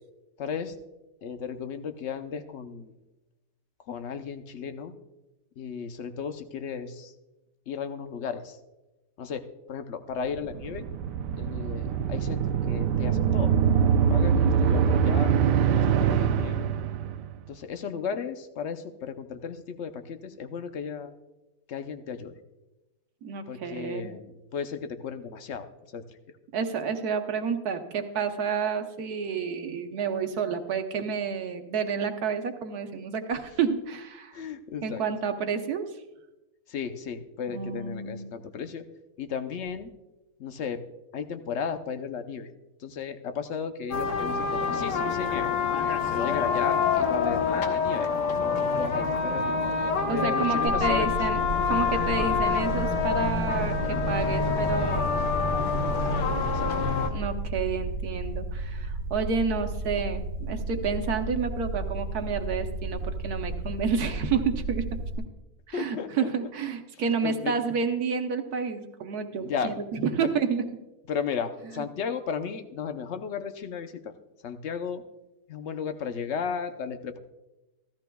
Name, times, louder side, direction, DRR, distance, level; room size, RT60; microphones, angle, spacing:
voice 1, 0.4-0.7 1.2-2.9 3.8-4.9 5.6-7.1 7.7-8.6 9.2-10.9 11.4-13.8 14.1-15.3 15.7-16.7 17.5-21.2 21.7-22.3 23.5-26.0 34.3-35.0 36.7-38.9 39.2-39.9 40.4-40.8 41.1-42.5 42.8-45.5 46.1-48.1 48.7-49.6 50.1-51.1 56.5-57.0 65.7-66.5 67.2-67.5 69.4-69.7 70.2-70.3 71.1-74.1 74.4-75.0 75.5-77.2, left 6 dB, 55° left, 8 dB, 0.9 m, -35 dB
sound 1, 10.4-17.3, right 7 dB, 85° right, 1.2 m, -24 dB
voice 2, 23.2-24.1 26.5-34.4 34.8-35.9 37.5-38.3 50.0-51.4 51.7-55.3 57.1-64.9 65.7-69.7 70.0-70.6 71.8-71.9, right 6 dB, 70° right, 6 dB, 1.4 m, -30 dB
sound 2, 43.9-57.1, left 5 dB, 90° left, 1.6 m, -26 dB
sound 3, 50.7-65.2, right 2 dB, 50° right, 1.4 m, -33 dB
15.5 x 13.5 x 2.3 m, 1.0 s
omnidirectional pair, 1.8 m